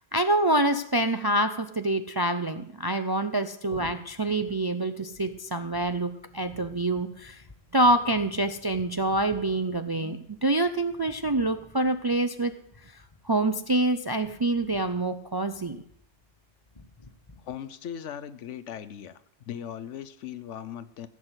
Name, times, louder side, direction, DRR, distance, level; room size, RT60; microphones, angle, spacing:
voice 1, 0.1-7.4 7.7-12.5 12.8-13.0 13.2-15.8, right 1 dB, 40° right, 9 dB, 0.3 m, -26 dB
sound 1, 3.7-17.6, left 2 dB, 25° left, 1.4 m, -52 dB
voice 2, 17.4-19.2 19.5-21.1, left 9 dB, 85° left, 13 dB, 1.1 m, -38 dB
15.5 x 6.1 x 8.0 m, 0.72 s
omnidirectional pair, 1.2 m